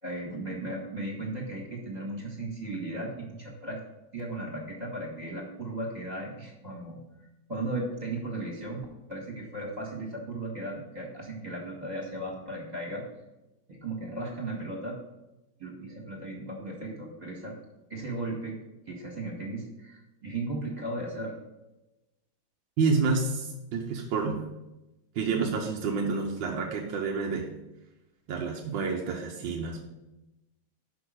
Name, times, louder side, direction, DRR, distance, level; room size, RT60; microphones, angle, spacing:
voice 1, 0.0-3.8 4.1-7.0 7.5-13.0 13.7-14.9 15.6-17.5 17.9-18.6 18.9-21.3, right 2 dB, 20° right, -3 dB, 1.9 m, -36 dB
voice 2, 22.8-24.4 25.1-27.5 28.3-29.8, right 4 dB, 70° right, 0 dB, 1.6 m, -29 dB
6.1 x 5.8 x 6.4 m, 0.99 s
omnidirectional pair, 2.2 m